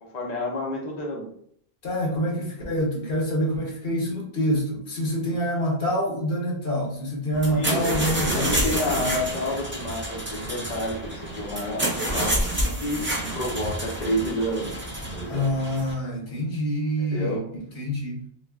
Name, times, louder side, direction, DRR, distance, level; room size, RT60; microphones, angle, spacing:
voice 1, 0.0-1.3 7.5-7.9 8.3-12.4 12.8-13.1 13.3-14.8 15.1-15.5 17.0-17.4, left 1 dB, 45° left, -3 dB, 0.8 m, -29 dB
voice 2, 1.8-8.6 9.0-9.1 15.3-17.4 17.7-18.2, equal, 65° left, -2 dB, 1.2 m, -26 dB
sound 1, 7.3-15.9, right 1 dB, 15° right, 0.5 m, -28 dB
4.6 x 2.3 x 2.3 m, 0.66 s
omnidirectional pair, 1.1 m